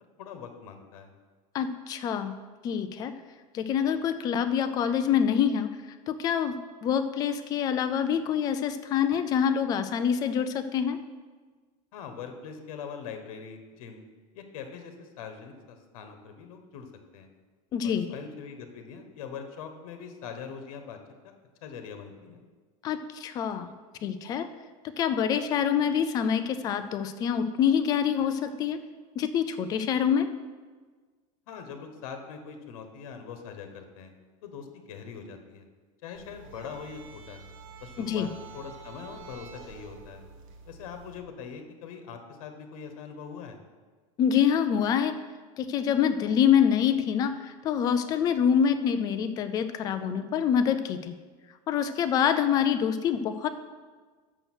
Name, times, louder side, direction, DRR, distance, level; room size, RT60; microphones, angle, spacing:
voice 1, 0.2-1.1 11.9-14.0 14.3-16.9 17.1-17.3 17.8-21.0 21.2-21.3 21.6-22.4 31.5-34.1 34.4-35.6 36.0-37.4 37.8-40.2 40.7-43.6, left 6 dB, 75° left, 6 dB, 1.2 m, -42 dB
voice 2, 1.5-2.3 2.6-3.1 3.5-5.7 6.1-6.6 6.8-11.0 17.7-18.1 22.8-23.7 24.0-24.5 25.0-28.8 29.2-30.3 38.0-38.3 44.2-45.1 45.6-51.1 51.7-53.5, left 8 dB, 20° left, 10 dB, 0.3 m, -26 dB
sound 1, 36.1-41.2, right 5 dB, 65° right, 1.3 m, -48 dB
6.6 x 6.2 x 6.2 m, 1.4 s
supercardioid pair, 170°, 18 cm